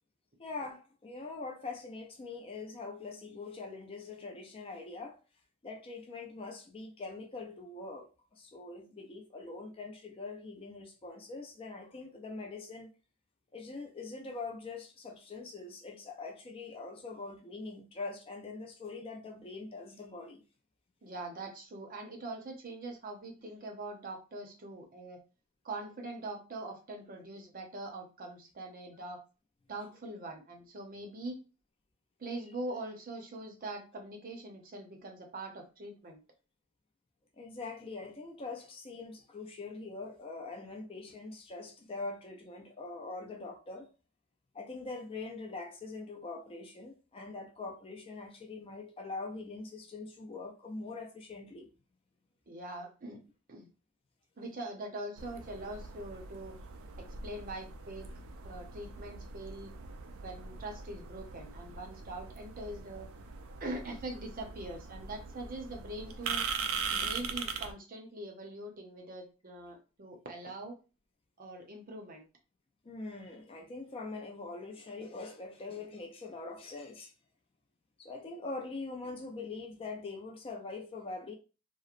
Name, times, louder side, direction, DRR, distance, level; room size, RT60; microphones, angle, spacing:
voice 1, 0.4-5.2 5.6-12.9 13.5-20.4 37.4-43.9 44.5-51.7 72.8-77.1 78.0-81.3, left 3 dB, 25° left, 0.4 m, -43 dB
voice 2, 21.0-25.2 25.6-29.2 29.7-31.4 32.2-36.2 52.5-53.2 53.5-53.7 54.4-56.6 57.0-58.1 58.4-59.7 60.2-63.1 63.6-66.4 66.9-70.8 71.4-72.3, right 2 dB, 40° right, 0.6 m, -43 dB
sound 1, 55.2-67.7, right 5 dB, 80° right, 0.4 m, -41 dB
2.9 x 2.0 x 2.4 m
head